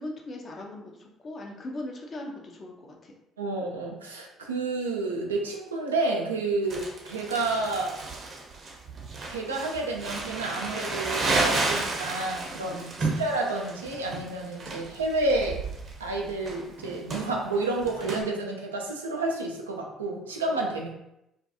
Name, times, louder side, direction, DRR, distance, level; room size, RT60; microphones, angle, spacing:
voice 1, 0.0-3.1 12.5-12.8, left 1 dB, 45° left, 0 dB, 0.6 m, -39 dB
voice 2, 3.4-8.0 9.3-15.6 16.0-20.9, right 2 dB, 85° right, 1 dB, 0.3 m, -30 dB
Crumpling crinkling, 6.7-18.2, right 3 dB, 45° right, 0.7 m, -32 dB
2.4 x 2.2 x 2.7 m, 0.84 s
hypercardioid pair, 50°, 0 cm